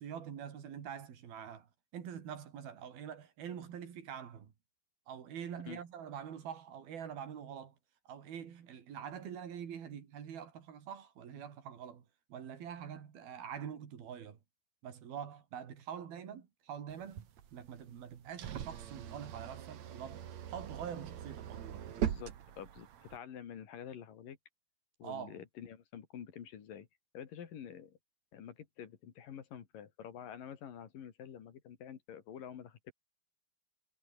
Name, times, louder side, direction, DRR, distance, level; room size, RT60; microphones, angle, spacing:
voice 1, 0.0-1.7 1.9-4.5 5.1-7.7 8.1-14.4 14.8-21.9 25.0-25.3, right 8 dB, 80° right, 4.7 m, -45 dB
sound 1, 16.9-23.2, right 10 dB, 55° right, 2.6 m, -41 dB
voice 2, 22.0-24.4 25.0-26.9 27.1-28.0 28.3-32.9, left 8 dB, 65° left, 3.9 m, -48 dB
omnidirectional pair, 4.2 m